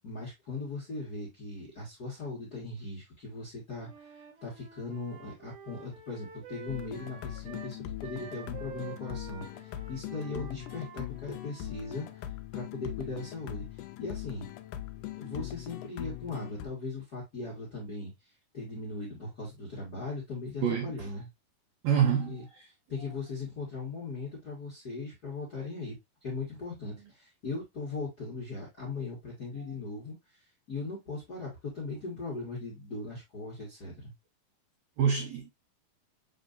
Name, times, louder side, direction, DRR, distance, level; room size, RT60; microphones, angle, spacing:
voice 1, 0.0-14.5 15.2-18.1 18.5-21.3 22.3-22.4 22.9-30.1 30.7-34.1, left 3 dB, 50° left, 1.1 m, -39 dB
Wind instrument woodwind instrument, 3.8-12.1, right 7 dB, 65° right, 3.0 m, -49 dB
sound 1, 6.7-16.7, left 13 dB, 80° left, 1.9 m, -41 dB
voice 2, 20.6-21.1 21.8-22.7 35.0-35.5, right 8 dB, 85° right, 1.5 m, -27 dB
7.0 x 2.9 x 2.5 m
omnidirectional pair, 4.2 m